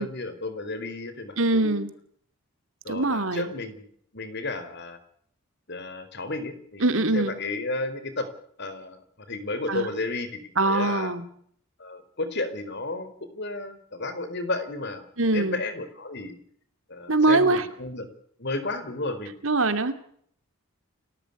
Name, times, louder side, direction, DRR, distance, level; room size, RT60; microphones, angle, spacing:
voice 1, 0.0-1.8 2.8-3.8 4.1-5.0 5.7-6.9 7.1-8.3 8.6-11.1 11.8-15.1 15.3-16.3 16.9-18.1 18.4-19.4, left 2 dB, 50° left, 11 dB, 4.2 m, -32 dB
voice 2, 1.4-1.9 2.9-3.5 6.8-7.4 9.7-9.9 10.6-11.2 15.2-15.6 17.1-17.6 19.4-19.9, right 2 dB, 65° right, 10 dB, 2.7 m, -23 dB
30.0 x 13.5 x 8.4 m, 0.63 s
head